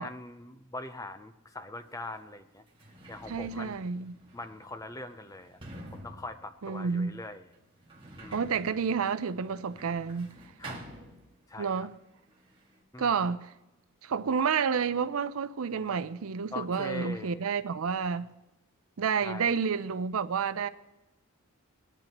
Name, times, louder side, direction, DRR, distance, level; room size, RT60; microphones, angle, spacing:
voice 1, 0.0-2.6 3.1-3.7 4.3-5.6 5.9-7.5 8.2-8.4 10.6-10.8 11.5-11.9 12.9-13.2 16.5-17.5 19.2-19.6, left 2 dB, 15° left, 0.6 m, -42 dB
Sliding door, 1.9-2.0 2.6-11.7 12.0-12.8, right 1 dB, 20° right, 1.8 m, -49 dB
voice 2, 3.3-4.2 6.6-7.1 8.3-10.3 11.6-11.9 13.0-13.5 14.0-18.3 19.0-20.7, right 6 dB, 70° right, 0.5 m, -30 dB
19.0 x 10.5 x 3.0 m
head